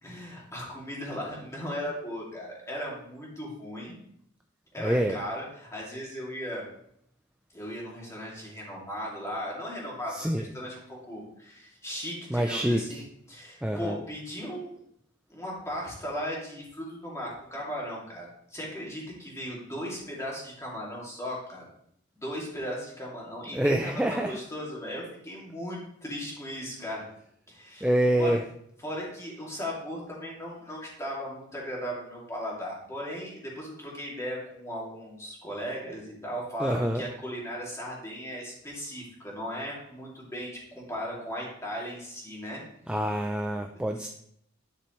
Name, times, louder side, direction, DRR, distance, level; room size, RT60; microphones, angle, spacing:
voice 1, 0.0-4.0 4.7-6.6 7.5-13.0 13.3-14.8 15.3-21.7 22.2-27.0 27.5-27.9 28.2-28.4 28.8-42.6 43.7-44.1, equal, 15° left, -4 dB, 2.6 m, -37 dB
voice 2, 4.8-5.2 10.1-10.4 12.3-13.0 13.6-14.0 23.5-24.4 27.8-28.4 36.6-37.0 42.9-44.1, right 1 dB, 5° right, 3 dB, 0.4 m, -26 dB
10.5 x 6.6 x 3.1 m, 0.72 s
head